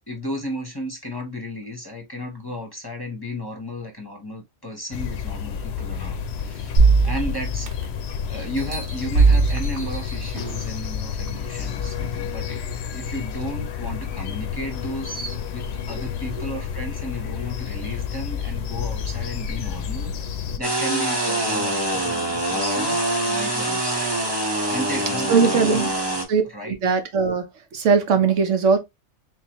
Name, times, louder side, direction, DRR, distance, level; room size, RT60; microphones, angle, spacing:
voice 1, 0.1-6.8 7.0-7.9 8.3-12.6 12.9-20.1 20.6-26.2 26.5-26.8 28.2-28.5, left 1 dB, 20° left, 0.8 m, -34 dB
sound 1, 4.9-20.6, left 7 dB, 65° left, 0.8 m, -30 dB
sound 2, 6.8-8.1 8.6-10.7 11.3-11.4, right 3 dB, 55° right, 0.9 m, -20 dB
sound 3, 20.6-26.2, right 1 dB, 20° right, 1.0 m, -24 dB
voice 2, 25.3-25.9 26.3-27.5 27.7-28.8, right 5 dB, 85° right, 1.2 m, -19 dB
3.7 x 3.2 x 2.9 m
omnidirectional pair, 1.2 m